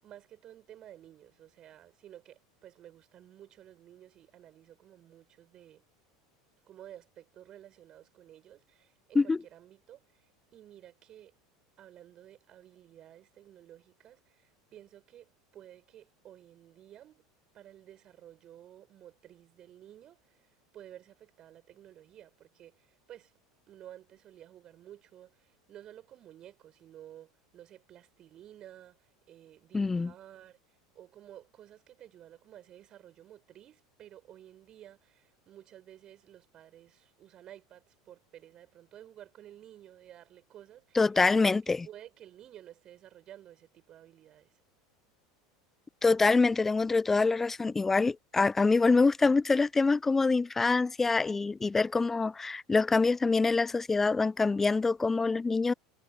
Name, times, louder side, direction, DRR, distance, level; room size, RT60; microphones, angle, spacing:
voice 1, 0.0-5.9 6.6-11.3 11.8-17.3 17.5-23.3 23.7-30.6 30.9-44.6, right 11 dB, 40° right, 5.6 m, -53 dB
voice 2, 29.7-30.1 41.0-41.8 46.0-55.7, left 4 dB, 15° left, 0.6 m, -25 dB
figure-of-eight pair, 75°, 2 cm